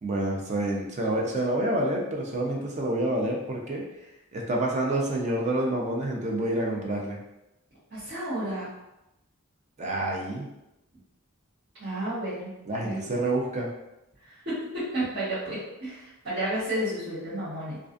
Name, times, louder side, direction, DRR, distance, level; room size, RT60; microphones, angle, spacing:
voice 1, 0.0-3.8 4.3-7.2 9.8-10.5 12.7-13.7, right 1 dB, 30° right, -1 dB, 0.4 m, -28 dB
voice 2, 7.9-8.7 11.8-12.5 12.8-13.0 14.2-17.8, right 1 dB, 55° right, -16 dB, 1.3 m, -32 dB
2.4 x 2.3 x 2.5 m, 0.92 s
head